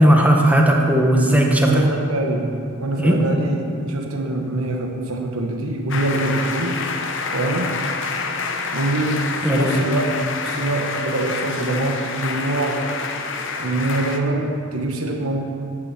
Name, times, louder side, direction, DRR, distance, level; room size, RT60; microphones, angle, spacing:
voice 1, 0.0-1.7 3.0-3.2 9.4-9.8, right 1 dB, 5° right, 1 dB, 0.9 m, -16 dB
voice 2, 1.7-6.7 7.3-7.7 8.7-10.2 10.4-12.8 13.6-15.4, right 2 dB, 90° right, 2 dB, 1.0 m, -24 dB
sound 1, 5.9-14.2, left 4 dB, 60° left, 0.8 m, -28 dB
10.5 x 6.9 x 5.8 m, 2.6 s
head